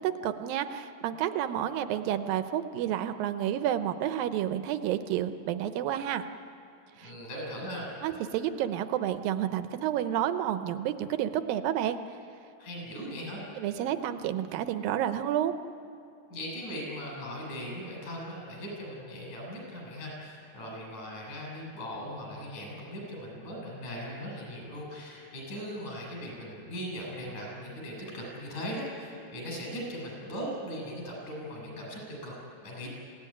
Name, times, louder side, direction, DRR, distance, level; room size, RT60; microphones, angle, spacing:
voice 1, 0.0-6.3 7.0-7.1 8.0-12.0 13.6-15.5, right 11 dB, 75° right, 10 dB, 2.4 m, -30 dB
voice 2, 7.0-7.9 12.6-13.4 16.3-32.4 32.6-32.9, equal, 50° left, -1 dB, 8.5 m, -39 dB
27.0 x 17.0 x 10.0 m, 2.5 s
omnidirectional pair, 4.5 m